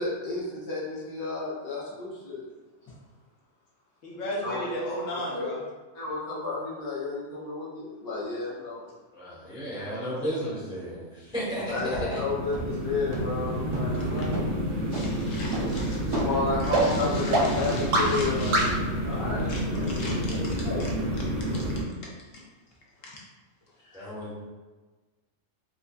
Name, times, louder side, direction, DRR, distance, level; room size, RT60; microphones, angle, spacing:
voice 1, 0.0-2.4 4.4-4.7 5.0-5.5 5.9-8.9 11.7-14.4 16.1-18.8 19.0-20.4 20.6-20.8 23.8-24.1, left 3 dB, 85° left, -8 dB, 1.7 m, -32 dB
voice 2, 4.0-5.6 9.4-10.4 13.9-14.3 14.9-16.2 16.6-18.7 19.5-20.5 21.4-21.6 23.0-23.2, left 1 dB, 65° left, -3 dB, 1.1 m, -37 dB
voice 3, 9.1-11.7 12.1-12.2 23.9-24.4, equal, 5° right, -7 dB, 0.8 m, -33 dB
sound 1, 11.3-21.8, equal, 55° right, 0.6 m, -30 dB
sound 2, 11.9-12.0 12.5-12.6 13.1-13.2 13.7-13.8 14.3-14.4 14.9-15.0 15.5-15.6 16.1-16.2 16.7-16.8 17.3-17.4 17.9-18.0 18.5-18.6, right 2 dB, 90° right, 1.2 m, -24 dB
4.6 x 2.6 x 2.3 m, 1.3 s
omnidirectional pair, 1.6 m